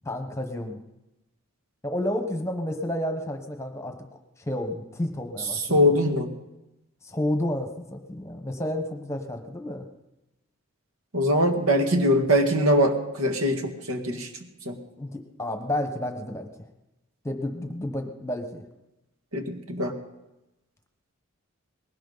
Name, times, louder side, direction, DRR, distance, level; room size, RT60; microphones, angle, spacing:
voice 1, 0.0-0.8 1.8-3.9 4.4-6.1 7.0-9.8 15.0-16.5 17.2-18.6, left 1 dB, 15° left, 5 dB, 1.1 m, -31 dB
voice 2, 5.7-6.3 11.1-14.3 14.7-14.8 19.3-19.9, equal, 90° right, 5 dB, 1.9 m, -22 dB
20.0 x 17.5 x 4.0 m, 0.97 s
head